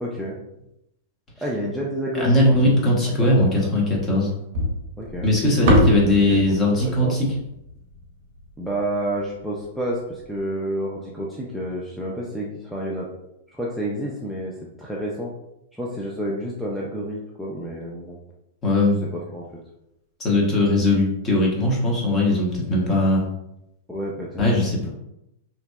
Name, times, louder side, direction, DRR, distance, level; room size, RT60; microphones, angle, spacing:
voice 1, 0.0-0.4 1.4-2.5 3.0-3.7 5.0-5.8 6.3-6.4 6.8-7.2 8.6-13.1 13.5-14.5 14.8-15.3 15.7-18.2 19.3-19.4 23.9-24.4, right 1 dB, ahead, -5 dB, 0.4 m, -29 dB
voice 2, 2.1-4.3 5.2-7.3 18.6-19.0 20.2-23.3 24.4-24.9, left 1 dB, 25° left, -2 dB, 0.8 m, -19 dB
sound 1, 4.5-8.8, equal, 60° right, 0.6 m, -24 dB
2.6 x 2.1 x 2.2 m, 0.84 s
hypercardioid pair, 115°, 0 cm